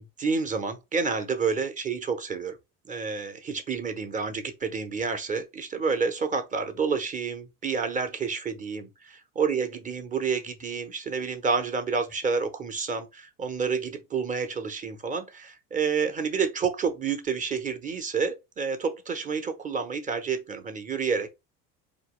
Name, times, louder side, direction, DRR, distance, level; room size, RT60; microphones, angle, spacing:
voice 1, 0.2-2.6 2.9-21.3, right 5 dB, 25° right, 0.8 m, -29 dB
4.4 x 3.0 x 3.1 m
cardioid pair, 140°, 32 cm